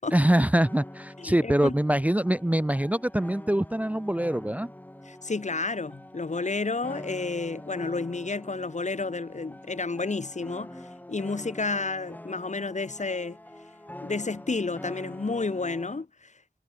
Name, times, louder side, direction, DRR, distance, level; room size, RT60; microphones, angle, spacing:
voice 1, 0.1-4.7, right 1 dB, 10° right, 0.6 m, -24 dB
sound 1, 0.6-16.0, left 1 dB, 10° left, 1.3 m, -45 dB
voice 2, 1.2-1.7 5.1-10.7 11.1-13.4 14.0-16.1, left 3 dB, 45° left, 1.4 m, -31 dB
wide cardioid pair, 65°, 17 cm